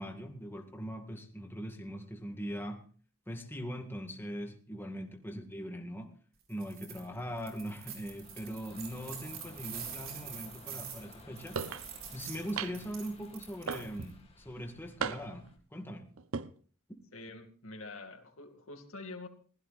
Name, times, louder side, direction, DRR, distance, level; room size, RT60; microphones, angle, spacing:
voice 1, 0.0-2.8 3.3-6.1 6.5-11.6 12.1-16.1, equal, 10° left, 3 dB, 2.0 m, -41 dB
sound 1, 6.5-7.0 7.4-14.1, right 8 dB, 70° right, 4.4 m, -46 dB
sound 2, 6.9-15.6, left 2 dB, 30° left, 2.2 m, -56 dB
sound 3, 11.6-11.9 12.6-13.0 13.7-14.2 15.0-15.5 16.2-16.5, right 5 dB, 90° right, 0.8 m, -36 dB
voice 2, 17.1-19.3, left 2 dB, 85° left, 5 dB, 2.4 m, -46 dB
23.0 x 16.5 x 2.5 m, 0.42 s
head